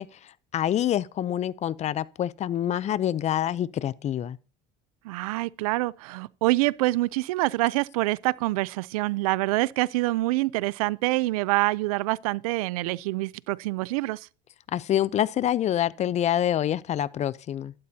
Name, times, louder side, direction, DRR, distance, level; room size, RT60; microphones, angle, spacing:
voice 1, 0.0-4.4 14.7-17.7, left 11 dB, 40° left, 0.6 m, -26 dB
voice 2, 5.0-14.3, right 20 dB, 85° right, 0.4 m, -26 dB
12.0 x 11.5 x 2.8 m
supercardioid pair, 95°, 18 cm